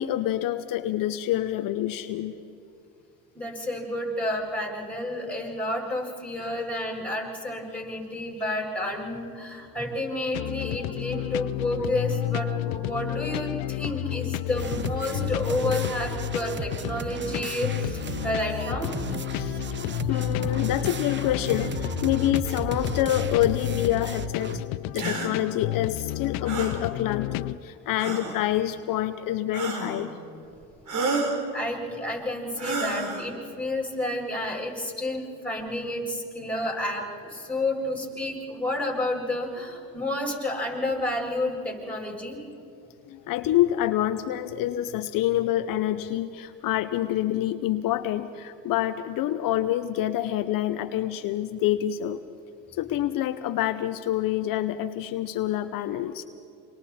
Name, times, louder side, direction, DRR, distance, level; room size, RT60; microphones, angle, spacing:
voice 1, 0.0-2.4 19.3-19.6 20.1-24.6 24.9-30.1 43.1-52.2 52.7-56.2, left 13 dB, 65° left, 9 dB, 0.9 m, -27 dB
voice 2, 3.3-18.9 31.5-42.4, left 1 dB, 5° left, -2 dB, 7.4 m, -30 dB
sound 1, 10.3-27.6, left 17 dB, 80° left, 0.6 m, -31 dB
sound 2, 14.5-24.6, right 7 dB, 30° right, 0.8 m, -36 dB
sound 3, 25.0-25.3 26.5-26.8 28.0-28.4 29.5-30.1 30.9-31.4 32.6-33.3, right 3 dB, 55° right, 4.1 m, -29 dB
28.5 x 26.5 x 4.3 m, 2.8 s
supercardioid pair, 80°, 36 cm